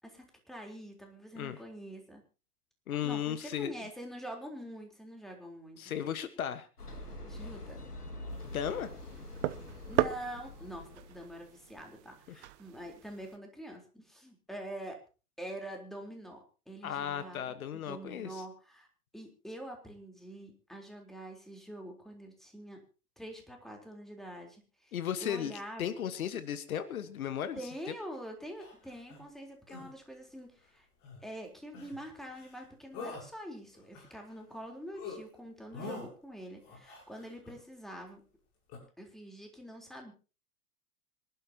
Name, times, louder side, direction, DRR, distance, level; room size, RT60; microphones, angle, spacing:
voice 1, 0.0-2.2 3.0-5.9 7.3-7.8 9.9-15.0 15.4-18.9 19.1-22.8 23.2-24.9 25.2-25.8 27.6-30.9 31.2-38.2 39.0-40.1, right 1 dB, ahead, 2 dB, 3.9 m, -45 dB
voice 2, 2.9-3.7 5.8-6.7 8.5-8.9 16.8-18.4 24.9-27.6, left 9 dB, 65° left, 12 dB, 1.5 m, -35 dB
sound 1, 6.8-11.6, left 1 dB, 90° left, 2.3 m, -45 dB
sound 2, 8.3-13.4, right 15 dB, 50° right, 1.0 m, -37 dB
sound 3, 28.6-29.2 29.7-29.9 31.0-31.2 31.7-32.0 32.3-32.6 32.9-33.3 33.7-34.6 34.9-35.2 35.7-36.1 36.6-37.6 38.7-38.8, left 4 dB, 45° left, 7.6 m, -45 dB
25.5 x 12.0 x 2.9 m, 0.34 s
figure-of-eight pair, 100°, 45 cm